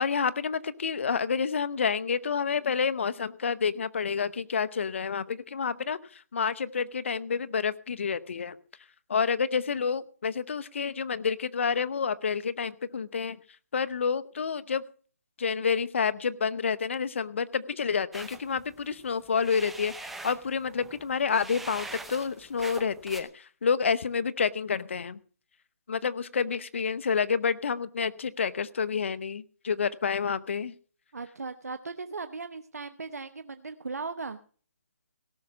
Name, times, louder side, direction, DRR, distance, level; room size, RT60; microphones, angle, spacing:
voice 1, 0.0-8.6 9.1-13.4 13.7-14.8 15.4-25.2 25.9-30.7, left 6 dB, 55° left, 14 dB, 0.9 m, -29 dB
sound 1, 18.1-23.2, right 2 dB, ahead, 0.6 m, -43 dB
voice 2, 31.1-34.4, right 4 dB, 90° right, 9 dB, 0.9 m, -37 dB
17.5 x 6.3 x 6.8 m, 0.42 s
hypercardioid pair, 165°, 8 cm